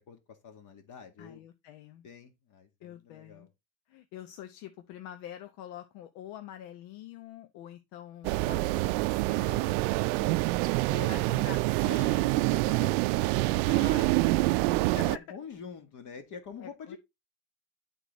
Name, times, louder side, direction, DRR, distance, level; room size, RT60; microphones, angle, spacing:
voice 1, 0.0-1.5 2.0-3.5 9.8-10.3 13.7-17.0, left 5 dB, 45° left, 1.8 m, -46 dB
voice 2, 1.2-2.0 2.8-3.5 3.9-9.8 10.9-13.6 14.5-14.7 15.0-15.2 16.6-17.0, left 11 dB, 70° left, 1.0 m, -46 dB
sound 1, 8.2-15.2, right 21 dB, 80° right, 0.5 m, -26 dB
11.0 x 4.0 x 4.0 m
cardioid pair, 130°, 43 cm